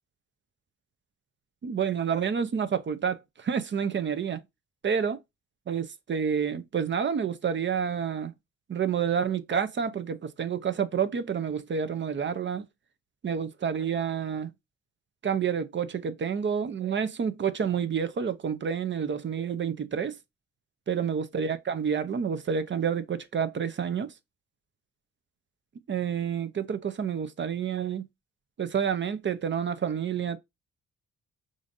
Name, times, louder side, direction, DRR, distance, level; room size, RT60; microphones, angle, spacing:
voice 1, 1.6-4.4 4.8-5.2 5.7-8.3 8.7-12.7 13.2-14.5 15.2-20.2 20.9-24.1 25.9-28.0 28.6-30.4, right 7 dB, 35° right, 0.6 m, -29 dB
5.0 x 2.6 x 2.5 m
supercardioid pair, 60°, 31 cm